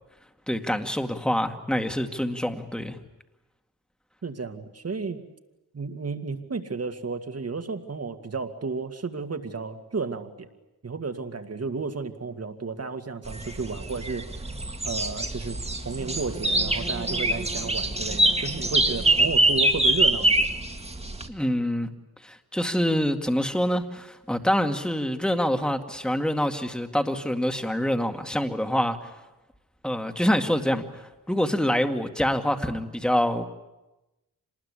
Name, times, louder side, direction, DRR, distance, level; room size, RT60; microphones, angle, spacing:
voice 1, 0.5-3.0 21.3-21.9 22.2-29.1 29.8-33.5, equal, ahead, 6 dB, 2.1 m, -26 dB
voice 2, 4.2-5.2 5.7-10.5 10.8-14.3 14.8-15.6 15.8-20.5, right 4 dB, 40° right, 7 dB, 2.2 m, -32 dB
sound 1, 13.2-21.3, right 1 dB, 15° right, 2.1 m, -24 dB
26.5 x 20.5 x 9.9 m, 1.0 s
wide cardioid pair, 90°, 37 cm